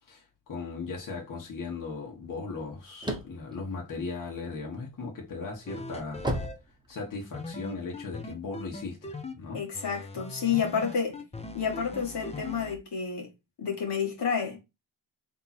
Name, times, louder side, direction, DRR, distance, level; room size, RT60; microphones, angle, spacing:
voice 1, 0.1-6.2 6.9-9.6, left 4 dB, 45° left, 1.5 m, -37 dB
sound 1, 2.5-4.7 5.2-7.4, right 1 dB, 10° right, 1.0 m, -34 dB
sound 2, 5.7-6.5 7.3-9.3 9.7-12.8, left 2 dB, 15° left, 0.6 m, -40 dB
voice 2, 9.5-11.2 11.5-13.3 13.6-14.6, left 7 dB, 60° left, 1.6 m, -30 dB
3.6 x 3.0 x 4.1 m
cardioid pair, 95°, 46 cm